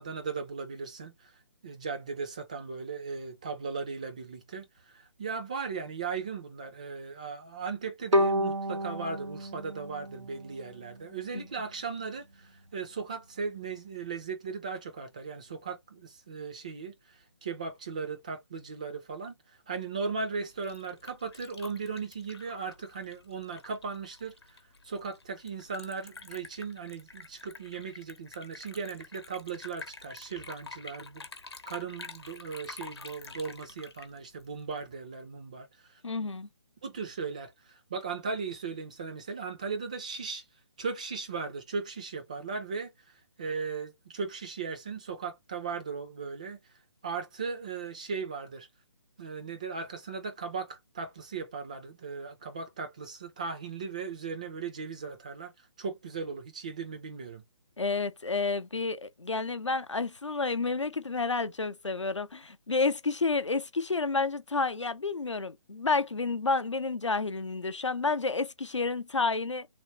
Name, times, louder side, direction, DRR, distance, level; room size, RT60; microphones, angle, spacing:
voice 1, 0.0-1.3 1.6-4.7 4.9-16.9 17.4-19.3 19.7-24.3 24.8-31.3 31.7-35.7 36.8-40.4 40.8-42.9 43.4-46.6 47.0-48.7 49.2-55.5 55.8-57.4, right 5 dB, 15° right, 0.3 m, -37 dB
Bowed string instrument, 8.1-11.2, equal, 85° right, 0.5 m, -30 dB
Liquid, 20.4-34.9, left 4 dB, 60° left, 0.9 m, -48 dB
voice 2, 36.0-36.5 57.8-69.7, left 3 dB, 75° left, 0.6 m, -30 dB
3.4 x 2.0 x 2.7 m
figure-of-eight pair, 145°, 15 cm